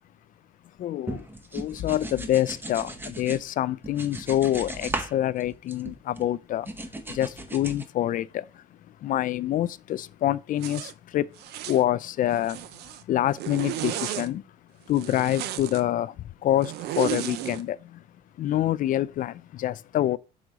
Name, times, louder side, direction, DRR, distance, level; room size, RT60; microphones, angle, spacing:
voice 1, 0.8-1.2 1.5-6.7 7.1-8.4 9.0-11.3 11.7-12.6 13.1-14.4 14.9-16.1 16.4-17.8 18.4-20.2, left 12 dB, 55° left, 0.4 m, -26 dB
sound 1, 1.1-3.4 3.8-5.1 5.4-6.3 6.7-7.9, right 1 dB, 10° right, 0.8 m, -36 dB
Zipper (clothing), 10.6-10.9 11.4-11.8 12.3-13.0 13.4-14.3 14.9-15.8 16.6-17.6, right 13 dB, 75° right, 0.6 m, -33 dB
6.2 x 4.0 x 4.8 m
cardioid pair, 110°, 17 cm